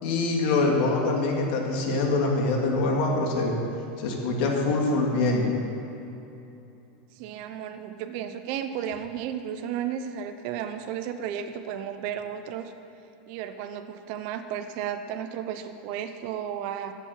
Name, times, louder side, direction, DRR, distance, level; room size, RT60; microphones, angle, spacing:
voice 1, 0.0-3.5 4.0-5.5, left 3 dB, 60° left, 0 dB, 2.6 m, -24 dB
voice 2, 7.1-12.7 13.3-16.9, right 9 dB, 50° right, 7 dB, 0.8 m, -33 dB
21.0 x 7.4 x 5.9 m, 2.9 s
supercardioid pair, 155°, 5 cm